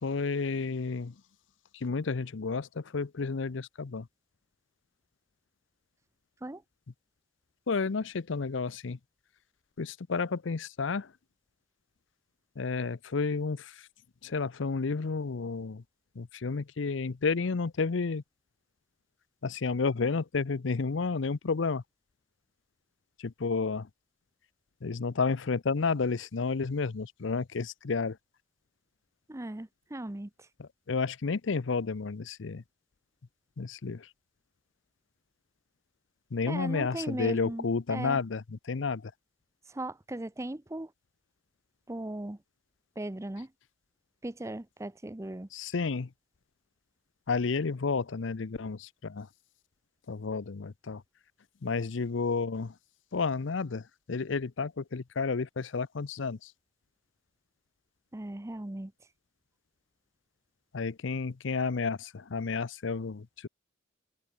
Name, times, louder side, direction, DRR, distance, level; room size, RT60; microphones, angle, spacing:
voice 1, 0.0-1.2 1.7-4.1 7.7-9.0 9.8-11.1 12.6-13.9 14.2-15.8 16.1-18.2 19.4-21.8 23.2-23.9 24.8-28.2 30.6-32.6 33.6-34.1 36.3-39.1 45.5-46.1 47.3-49.3 50.1-51.0 51.6-52.7 53.1-56.5 60.7-63.5, left 4 dB, 70° left, 0.6 m, -31 dB
voice 2, 29.3-30.5 36.5-38.2 39.7-40.9 41.9-42.4 43.0-43.5 44.2-45.5 58.1-58.9, right 1 dB, 15° right, 0.6 m, -38 dB
open air
head